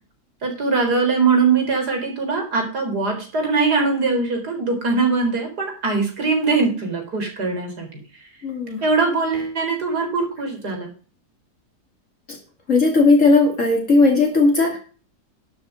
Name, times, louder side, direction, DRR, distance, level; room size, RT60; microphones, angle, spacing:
voice 1, 0.4-7.9 8.8-10.9, right 4 dB, 70° right, 3 dB, 4.6 m, -21 dB
voice 2, 8.4-8.8 12.3-12.4 12.7-14.8, left 3 dB, 50° left, 1 dB, 3.0 m, -16 dB
11.5 x 7.7 x 5.5 m, 0.36 s
omnidirectional pair, 1.8 m